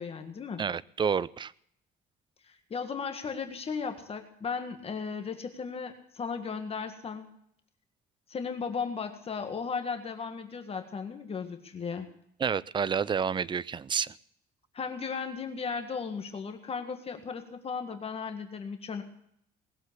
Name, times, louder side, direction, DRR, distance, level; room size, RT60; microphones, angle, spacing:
voice 1, 0.0-0.6 2.4-7.3 8.3-12.1 14.7-19.0, left 5 dB, 35° left, 6 dB, 1.8 m, -36 dB
voice 2, 0.6-1.5 12.4-14.1, right 6 dB, 30° right, 20 dB, 0.5 m, -29 dB
19.5 x 7.8 x 8.2 m, 0.70 s
cardioid pair, 110°, 17 cm